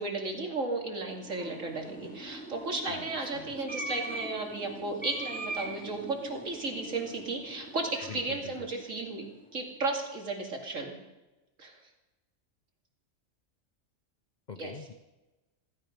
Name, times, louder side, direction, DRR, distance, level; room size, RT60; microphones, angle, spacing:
voice 1, 0.0-9.3 9.5-10.9 11.6-11.8 14.6-14.7, right 3 dB, 70° right, 1 dB, 2.9 m, -34 dB
sound 1, 1.0-9.5, right 1 dB, 5° left, 2.3 m, -42 dB
voice 2, 2.9-3.5 8.1-8.7 14.5-14.9, left 5 dB, 45° left, 8 dB, 0.7 m, -44 dB
16.0 x 15.5 x 5.2 m, 1.1 s
omnidirectional pair, 1.4 m